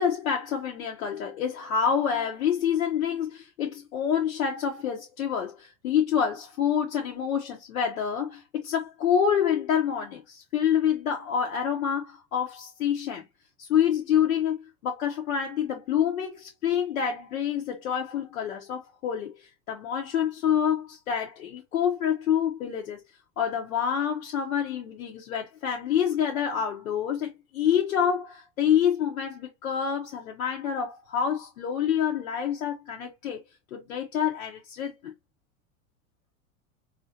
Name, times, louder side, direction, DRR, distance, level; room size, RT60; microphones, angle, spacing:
voice 1, 0.0-13.2 13.6-23.0 23.4-33.4 33.7-35.1, left 8 dB, 85° left, 1.0 m, -27 dB
4.1 x 2.5 x 2.7 m
hypercardioid pair, 100°, 41 cm